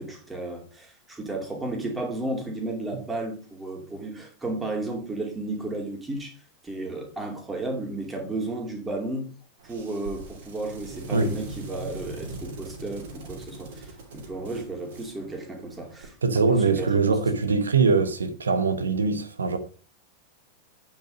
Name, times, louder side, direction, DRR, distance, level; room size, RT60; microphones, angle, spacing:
voice 1, 0.0-6.3 6.6-9.3 9.6-16.1 16.5-16.9, right 2 dB, 10° right, 2.6 m, -33 dB
sound 1, 9.6-16.0, right 2 dB, 55° right, 2.9 m, -41 dB
voice 2, 16.2-19.6, right 4 dB, 70° right, 1.1 m, -22 dB
9.0 x 5.4 x 5.0 m
figure-of-eight pair, 90°, 0 cm